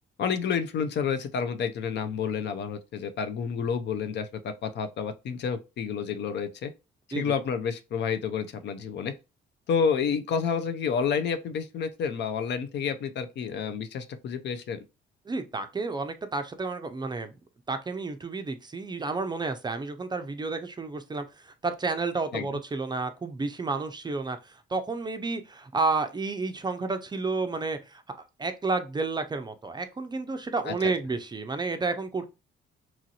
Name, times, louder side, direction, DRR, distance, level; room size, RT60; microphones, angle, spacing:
voice 1, 0.2-6.7 7.2-9.1 9.7-14.8 22.3-22.6 30.7-30.9, left 6 dB, 65° left, 0.5 m, -29 dB
voice 2, 15.3-17.4 17.7-32.2, right 3 dB, 20° right, 0.4 m, -31 dB
3.0 x 2.5 x 2.7 m
cardioid pair, 90°, 20 cm